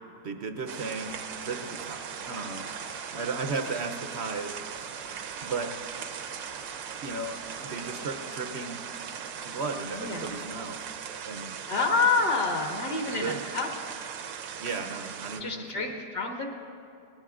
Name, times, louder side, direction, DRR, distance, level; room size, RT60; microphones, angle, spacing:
voice 1, 0.2-1.2 1.4-2.0 2.3-2.9 3.1-4.9 5.4-6.0 7.0-8.8 9.4-10.8 11.2-11.6 13.1-13.4 14.6-15.9, right 4 dB, 65° right, 6 dB, 0.6 m, -35 dB
Train, 0.6-11.1, equal, 85° left, 3.9 m, -50 dB
sound 1, 0.7-15.4, right 8 dB, 85° right, 1.5 m, -39 dB
voice 2, 9.9-10.4 11.7-13.7 15.4-16.5, left 4 dB, 65° left, 1 dB, 1.9 m, -28 dB
22.5 x 19.0 x 2.5 m, 2.6 s
omnidirectional pair, 2.0 m